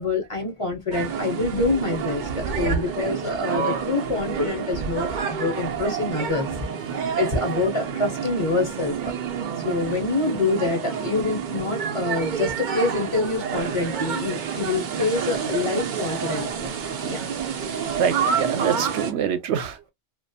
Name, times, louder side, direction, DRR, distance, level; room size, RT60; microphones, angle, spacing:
voice 1, 0.0-6.5 7.1-9.1 9.6-16.7 17.0-17.3, left 3 dB, 30° left, 0.8 m, -26 dB
sound 1, 0.9-19.1, right 6 dB, 55° right, 0.6 m, -28 dB
voice 2, 7.1-7.7 8.3-8.6 17.6-19.9, right 8 dB, 85° right, 0.9 m, -27 dB
2.4 x 2.2 x 2.6 m
omnidirectional pair, 1.2 m